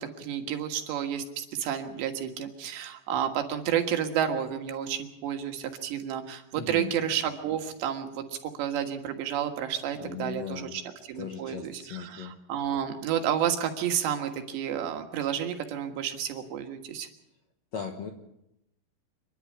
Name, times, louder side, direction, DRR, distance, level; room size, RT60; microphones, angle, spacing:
voice 1, 0.0-10.8 11.1-17.1, right 9 dB, 80° right, 5 dB, 3.8 m, -31 dB
voice 2, 6.5-6.9 10.0-10.8 11.1-12.3 17.7-18.1, left 7 dB, 65° left, 4 dB, 1.8 m, -38 dB
28.0 x 11.0 x 8.5 m, 0.84 s
omnidirectional pair, 5.0 m